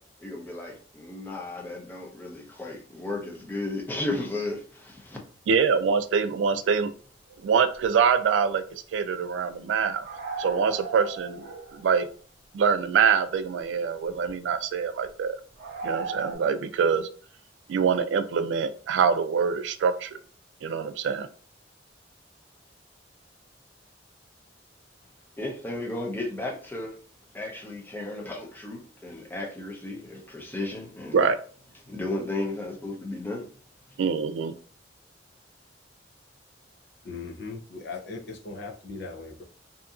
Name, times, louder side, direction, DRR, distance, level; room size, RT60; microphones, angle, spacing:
voice 1, 0.2-5.2 25.4-26.9 27.3-31.2 31.9-33.5, left 2 dB, 10° left, 0.6 m, -34 dB
voice 2, 5.5-6.9 7.4-10.0 10.4-12.1 12.5-15.4 15.8-17.1 17.7-20.2 20.6-21.3 31.1-31.4 34.0-34.5, right 6 dB, 85° right, 0.3 m, -24 dB
sound 1, 7.3-7.4 7.8-7.9 8.1-8.2 10.0-12.0 12.6-12.7 14.1-14.3 15.6-16.4, right 4 dB, 60° right, 0.7 m, -36 dB
voice 3, 37.0-39.4, left 3 dB, 65° left, 0.6 m, -38 dB
2.7 x 2.5 x 2.4 m
head